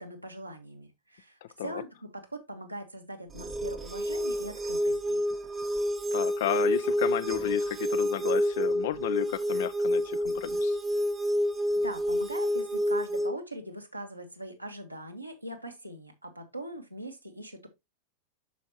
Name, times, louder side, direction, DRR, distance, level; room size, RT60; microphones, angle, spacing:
voice 1, 0.0-5.2 11.7-17.7, right 1 dB, 90° right, 1.5 m, -41 dB
voice 2, 1.4-1.8 6.1-10.8, left 12 dB, 55° left, 0.6 m, -32 dB
sound 1, 3.3-13.3, equal, 15° right, 0.8 m, -28 dB
7.0 x 6.3 x 2.9 m
figure-of-eight pair, 90°, 0 cm